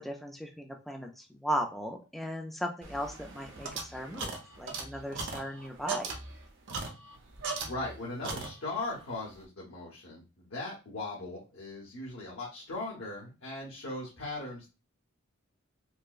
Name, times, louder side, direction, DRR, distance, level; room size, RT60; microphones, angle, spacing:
voice 1, 0.0-6.1, equal, ahead, 2 dB, 0.3 m, -37 dB
sound 1, 2.8-8.9, right 3 dB, 60° right, 0.7 m, -39 dB
voice 2, 7.6-14.7, left 2 dB, 65° left, -6 dB, 1.0 m, -39 dB
4.4 x 2.1 x 2.3 m, 0.30 s
head